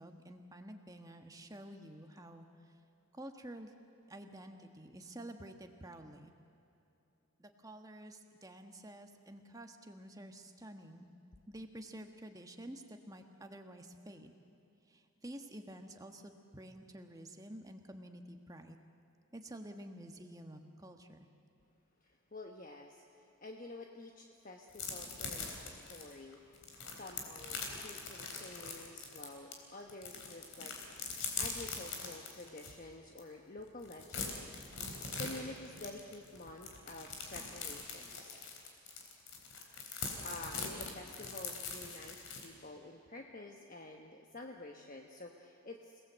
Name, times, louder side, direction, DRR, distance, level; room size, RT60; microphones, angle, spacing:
voice 1, 0.0-2.5 3.1-3.7 4.1-6.3 7.4-11.1 11.5-14.3 14.9-18.8 19.3-21.3, right 1 dB, 15° right, 5 dB, 1.4 m, -50 dB
voice 2, 22.0-26.4 26.9-34.4 35.2-38.4 40.2-46.0, left 2 dB, 40° left, 2 dB, 1.2 m, -49 dB
sound 1, 24.7-29.5 29.9-32.7 33.2-33.3 33.6-42.5, left 4 dB, 60° left, 3.8 m, -42 dB
28.0 x 18.5 x 8.0 m, 2.9 s
head